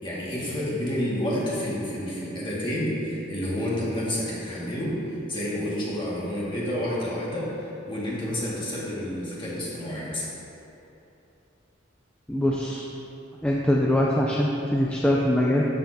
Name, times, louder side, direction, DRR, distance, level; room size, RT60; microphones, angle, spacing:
voice 1, 0.0-10.3, equal, 25° left, -7 dB, 1.9 m, -29 dB
voice 2, 12.3-12.9 13.4-15.6, left 1 dB, 5° left, -3 dB, 0.4 m, -23 dB
12.5 x 6.4 x 2.8 m, 2.9 s
head